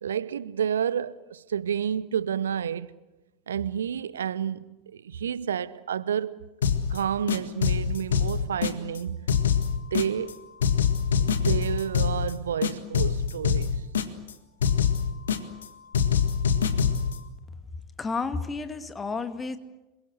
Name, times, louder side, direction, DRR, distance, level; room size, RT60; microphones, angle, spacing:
voice 1, 0.0-2.9 3.5-6.3 6.9-9.3 9.8-10.4 11.2-13.8, right 8 dB, 70° right, 0.9 m, -30 dB
sound 1, 6.6-7.0 7.3-9.0 9.3-10.3 10.6-12.3 12.6-14.3 14.6-15.7 15.9-17.2, left 7 dB, 70° left, 1.9 m, -25 dB
voice 2, 18.0-19.6, left 4 dB, 20° left, 2.3 m, -31 dB
27.0 x 23.0 x 8.0 m
figure-of-eight pair, 80°, 0 cm